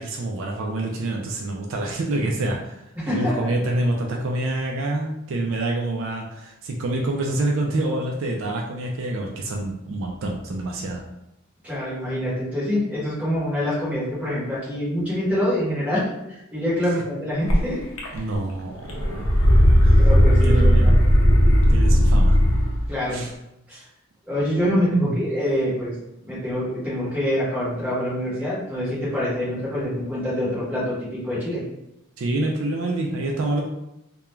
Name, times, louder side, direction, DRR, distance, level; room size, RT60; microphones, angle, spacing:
voice 1, 0.0-11.0 16.9-17.0 18.1-19.3 19.8-20.0 20.4-20.9 21.7-22.4 23.1-23.3 24.7-25.1 32.2-33.6, right 2 dB, 60° right, 1 dB, 0.3 m, -27 dB
voice 2, 3.0-3.5 11.6-16.0 16.3-17.8 20.0-20.9 22.9-23.2 23.7-23.8 24.3-25.9 26.2-31.6, equal, 5° right, -9 dB, 1.0 m, -25 dB
sound 1, 17.5-17.6 18.0-18.5 18.8-22.8, equal, 70° left, 0.6 m, -16 dB
2.3 x 2.2 x 3.0 m, 0.86 s
head